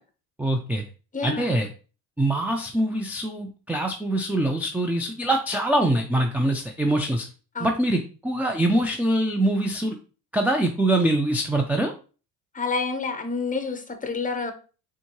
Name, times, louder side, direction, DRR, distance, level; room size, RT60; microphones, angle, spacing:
voice 1, 0.4-0.8 1.2-1.7 2.2-7.3 7.6-10.0 10.3-11.9, right 1 dB, 5° right, 0.5 m, -24 dB
voice 2, 1.1-1.6 7.5-7.8 12.5-14.5, left 4 dB, 20° left, 0.9 m, -28 dB
4.3 x 3.6 x 3.0 m
supercardioid pair, 90°, 39 cm